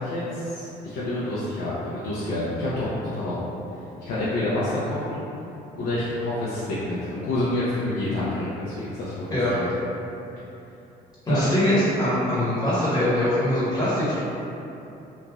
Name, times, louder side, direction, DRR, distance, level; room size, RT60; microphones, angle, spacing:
voice 1, 0.0-2.9 3.2-3.4 4.0-5.2 5.7-9.6 11.3-11.5, left 1 dB, 75° left, -11 dB, 0.6 m, -28 dB
voice 2, 11.3-14.1, left 1 dB, 25° left, -11 dB, 1.3 m, -22 dB
3.0 x 2.5 x 2.3 m, 2.9 s
cardioid pair, 110°, 17 cm